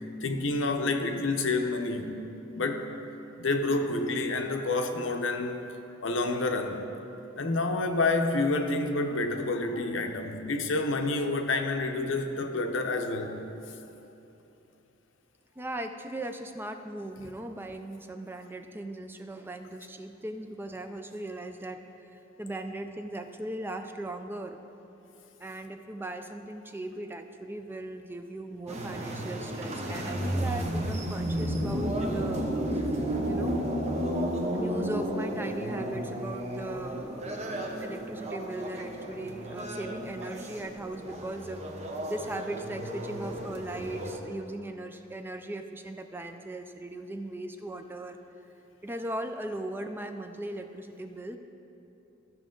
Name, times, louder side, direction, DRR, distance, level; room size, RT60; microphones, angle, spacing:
voice 1, 0.2-2.2 2.5-2.9 3.4-5.7 6.0-6.8 7.4-13.4, left 2 dB, 70° left, 5 dB, 0.7 m, -28 dB
voice 2, 15.6-21.8 22.4-24.8 25.4-32.8 33.3-33.6 34.5-41.6 42.1-48.2 48.8-51.4, right 1 dB, 10° right, 7 dB, 0.3 m, -38 dB
sound 1, 28.7-44.2, right 1 dB, 35° right, 0.9 m, -33 dB
15.0 x 5.9 x 3.8 m, 2.9 s
head